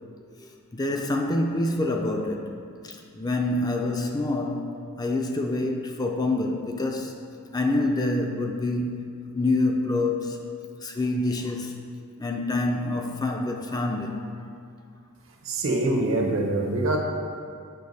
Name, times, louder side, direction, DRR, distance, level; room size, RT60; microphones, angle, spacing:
voice 1, 0.7-2.5 3.1-7.1 7.5-9.1 9.3-10.4 10.8-11.8 12.2-14.2, left 2 dB, 20° left, 2 dB, 0.4 m, -26 dB
voice 2, 15.4-17.0, right 2 dB, 65° right, 1 dB, 0.9 m, -24 dB
6.7 x 5.6 x 4.0 m, 2.2 s
head